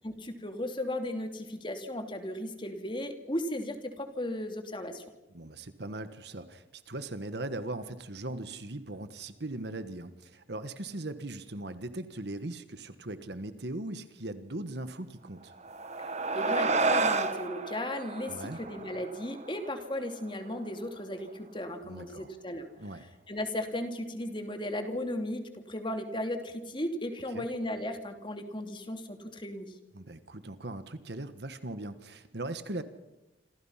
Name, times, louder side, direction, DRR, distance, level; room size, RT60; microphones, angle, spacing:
voice 1, 0.0-5.0 16.3-22.7 23.0-29.7, left 1 dB, 25° left, 6 dB, 2.8 m, -36 dB
voice 2, 5.3-15.5 18.2-18.6 21.8-22.3 22.8-23.0 27.3-27.4 29.9-32.8, right 2 dB, 60° right, 11 dB, 1.4 m, -39 dB
sound 1, 15.5-20.3, right 3 dB, 40° right, 1.5 m, -31 dB
27.5 x 26.5 x 5.8 m, 0.97 s
head